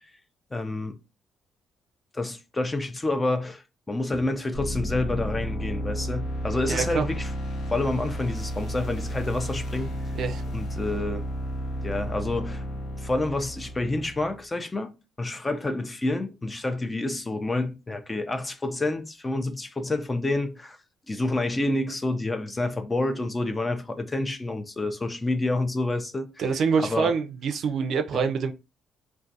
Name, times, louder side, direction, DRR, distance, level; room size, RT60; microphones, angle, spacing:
voice 1, 0.5-1.0 2.1-7.3 7.7-10.2 10.5-11.2 11.8-12.7 13.0-20.8 21.1-26.3 26.8-27.1 28.1-28.2, left 2 dB, 20° left, 0.4 m, -28 dB
sound 1, 4.5-14.4, equal, 75° left, 0.6 m, -32 dB
voice 2, 6.7-7.1 10.1-10.4 26.4-28.5, right 5 dB, 65° right, 0.4 m, -25 dB
2.3 x 2.1 x 2.7 m
cardioid pair, 90°, 0 cm